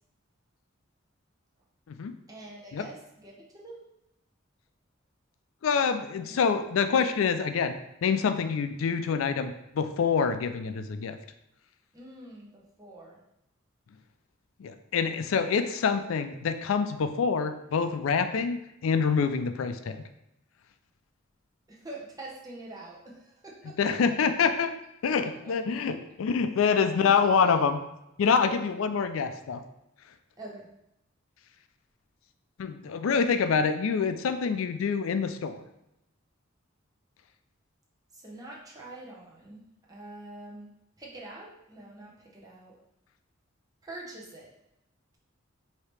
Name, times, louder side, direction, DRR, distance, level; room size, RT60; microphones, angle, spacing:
voice 1, 2.3-3.9 6.1-6.5 11.9-13.2 21.7-23.8 25.2-25.5 25.8-25.9 26.6-26.7 27.0-27.5 28.5-28.6 30.4-30.7 38.1-40.7 41.0-42.7 43.8-44.5, right 2 dB, 20° right, -4 dB, 0.8 m, -45 dB
voice 2, 5.6-11.2 14.6-20.0 23.8-24.7 25.0-27.8 28.2-29.6 32.6-35.6, left 6 dB, 80° left, 9 dB, 0.4 m, -26 dB
4.8 x 2.8 x 3.2 m, 0.85 s
head